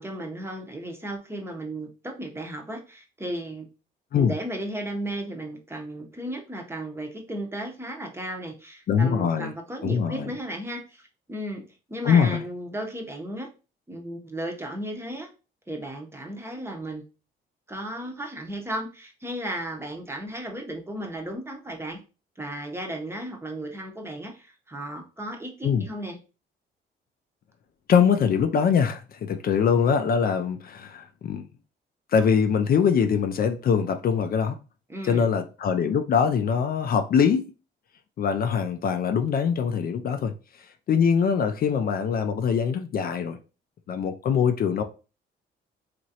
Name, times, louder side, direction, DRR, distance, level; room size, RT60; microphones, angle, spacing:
voice 1, 0.0-3.7 4.1-13.5 13.9-15.3 15.7-17.0 17.7-22.0 22.4-26.2 34.9-35.3, right 1 dB, 10° right, 0.7 m, -35 dB
voice 2, 8.9-9.5 9.8-10.3 12.0-12.4 25.6-25.9 27.9-31.5 32.1-34.5 35.0-37.5 38.2-40.3 40.9-43.4 43.9-44.8, left 7 dB, 50° left, 0.4 m, -23 dB
3.0 x 2.5 x 2.7 m
cardioid pair, 90°, 20 cm